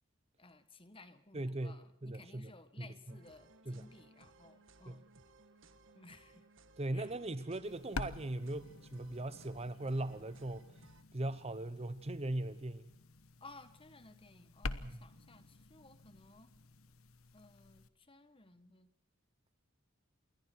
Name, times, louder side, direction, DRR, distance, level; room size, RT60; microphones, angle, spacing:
voice 1, 0.4-5.1 5.9-6.5 6.9-7.1 13.4-16.5 17.3-18.9, left 2 dB, 25° left, 1.5 m, -58 dB
voice 2, 1.3-2.5 2.8-3.2 3.6-3.9 4.9-5.0 6.8-10.7 11.1-13.0 14.8-15.1, right 1 dB, 30° right, 0.9 m, -39 dB
sound 1, 3.1-11.0, right 2 dB, 60° right, 1.8 m, -62 dB
sound 2, 7.6-17.9, left 3 dB, 90° left, 1.3 m, -48 dB
28.0 x 22.5 x 4.7 m
head